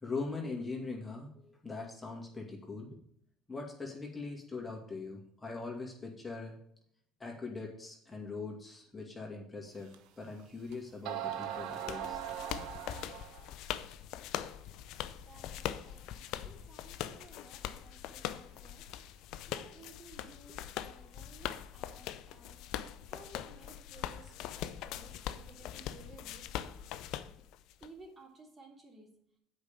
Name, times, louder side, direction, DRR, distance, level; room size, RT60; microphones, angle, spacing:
voice 1, 0.0-3.0 3.5-6.5 7.2-12.2, left 3 dB, 20° left, -1 dB, 2.3 m, -41 dB
sound 1, 9.9-10.0 10.7-10.8 11.0-13.5, right 10 dB, 70° right, 0.8 m, -39 dB
sound 2, 11.3-27.9, left 11 dB, 65° left, 0.5 m, -42 dB
voice 2, 15.2-18.8 19.5-22.6 23.1-26.4 27.8-29.1, right 3 dB, 30° right, -1 dB, 3.1 m, -57 dB
8.0 x 5.3 x 7.0 m, 0.69 s
hypercardioid pair, 70°, 0 cm